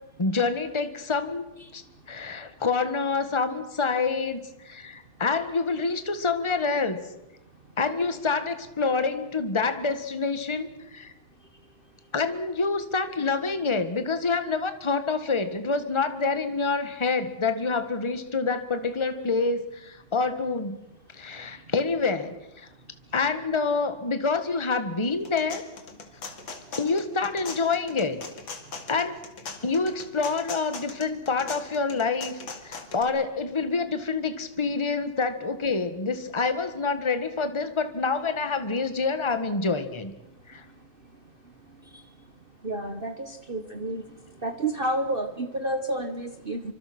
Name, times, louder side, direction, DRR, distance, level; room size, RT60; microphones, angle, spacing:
voice 1, 0.2-1.4 1.7-1.8 2.1-7.0 7.8-11.1 12.1-20.9 21.1-22.7 23.1-25.6 26.8-28.2 28.9-29.2 29.6-32.4 32.6-40.1 40.5-40.6, left 4 dB, 15° left, 10 dB, 1.5 m, -27 dB
sound 1, 25.0-33.0, left 4 dB, 80° left, 3.1 m, -40 dB
voice 2, 42.6-44.1 44.4-46.7, right 1 dB, 30° right, 8 dB, 1.2 m, -30 dB
26.0 x 25.5 x 6.1 m, 0.95 s
omnidirectional pair, 2.1 m